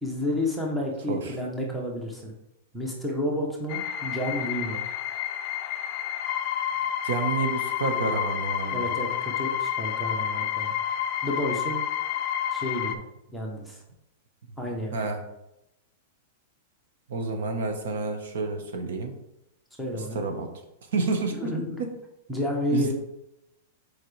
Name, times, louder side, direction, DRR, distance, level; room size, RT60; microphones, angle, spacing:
voice 1, 0.0-2.3 2.7-4.8 8.7-10.7 11.2-11.8 12.5-13.0 13.3-13.8 14.6-15.0 19.8-20.2 21.4-21.7 22.3-22.9, left 1 dB, ahead, -2 dB, 0.9 m, -30 dB
sound 1, 3.7-12.9, left 10 dB, 30° left, 0.4 m, -29 dB
voice 2, 7.0-8.9 14.9-15.2 17.1-19.2 19.9-20.5 20.9-21.5 21.8-21.9 22.7-22.9, right 4 dB, 70° right, 5 dB, 1.2 m, -29 dB
7.1 x 4.7 x 3.3 m, 0.85 s
supercardioid pair, 175°, 0 cm